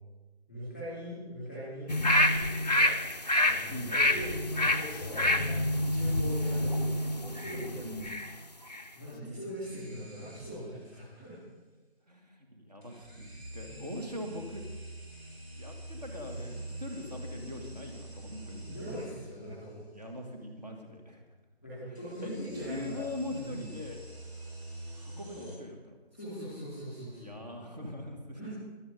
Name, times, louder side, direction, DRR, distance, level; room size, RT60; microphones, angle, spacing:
voice 1, 0.5-2.9 3.4-7.8 8.9-11.4 13.7-13.8 18.6-19.8 21.6-23.0 23.3-23.5 26.1-27.4 28.4-28.5, equal, 5° right, -11 dB, 2.2 m, -41 dB
sound 1, 1.9-8.3 8.7-8.8, left 1 dB, 40° left, 0.6 m, -28 dB
sound 2, 9.6-10.9 12.8-19.5 21.9-25.6, right 1 dB, 80° right, 4.3 m, -45 dB
voice 2, 12.1-14.6 15.6-18.7 19.9-21.2 22.2-24.0 24.9-26.0 27.2-28.5, left 1 dB, 40° right, 3 dB, 2.5 m, -42 dB
16.5 x 12.0 x 5.3 m, 1.2 s
figure-of-eight pair, 175°, 32 cm